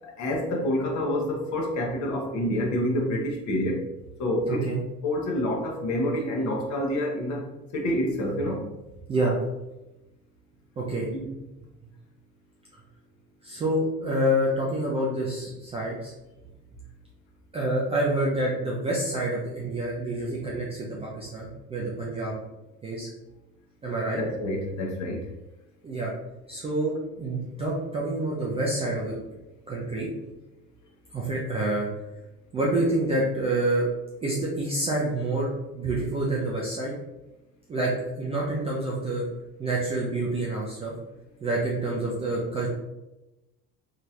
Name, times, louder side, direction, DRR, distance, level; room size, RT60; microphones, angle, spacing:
voice 1, 0.0-3.8 4.2-4.7 5.0-7.4 7.7-8.7 11.1-11.3 24.2-25.2, left 1 dB, 35° left, 1 dB, 0.8 m, -27 dB
voice 2, 4.5-4.8 9.1-9.4 10.8-11.1 13.4-16.1 17.5-22.3 22.8-23.1 23.8-24.2 25.8-26.1 26.5-29.1 29.7-30.1 31.1-31.9 32.5-33.9 34.2-36.9 37.7-39.3 39.6-40.9 41.4-42.7, right 1 dB, 15° right, -5 dB, 0.4 m, -27 dB
2.9 x 2.8 x 2.4 m, 0.99 s
figure-of-eight pair, 65°, 48 cm